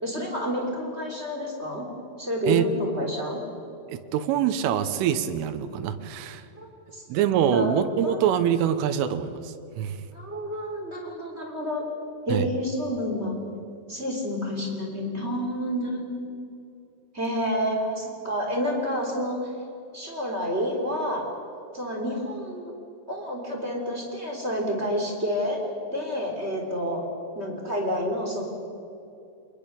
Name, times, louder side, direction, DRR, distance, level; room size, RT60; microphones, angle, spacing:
voice 1, 0.0-1.9 2.2-3.4 6.6-6.7 6.9-7.0 7.4-7.7 8.0-8.3 10.1-11.8 12.2-13.4 13.9-16.4 17.1-19.4 19.9-21.2 21.7-22.7 23.1-25.6 25.9-27.0 27.3-28.4, equal, 15° right, 0 dB, 2.9 m, -29 dB
voice 2, 3.9-6.4 7.1-10.0 12.3-12.5, right 9 dB, 80° right, 9 dB, 3.6 m, -25 dB
25.0 x 20.5 x 6.9 m, 2.7 s
omnidirectional pair, 5.7 m